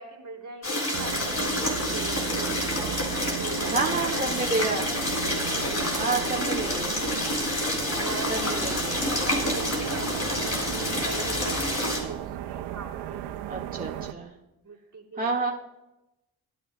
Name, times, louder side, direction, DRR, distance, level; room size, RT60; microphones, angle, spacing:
voice 1, 0.0-2.6 3.2-4.2 5.3-6.4 8.0-13.2 14.6-15.5, right 4 dB, 45° right, 1 dB, 3.3 m, -41 dB
sound 1, 0.6-12.0, left 1 dB, 40° left, 4.9 m, -28 dB
sound 2, 0.9-14.1, right 11 dB, 80° right, 0.8 m, -36 dB
sound 3, 3.4-11.7, left 1 dB, 90° left, 2.0 m, -45 dB
voice 2, 3.7-4.9 6.0-6.9 8.3-9.0 13.5-14.3 15.2-15.5, right 3 dB, 20° right, -3 dB, 2.0 m, -29 dB
20.5 x 10.0 x 2.4 m, 0.94 s
hypercardioid pair, 40°, 40 cm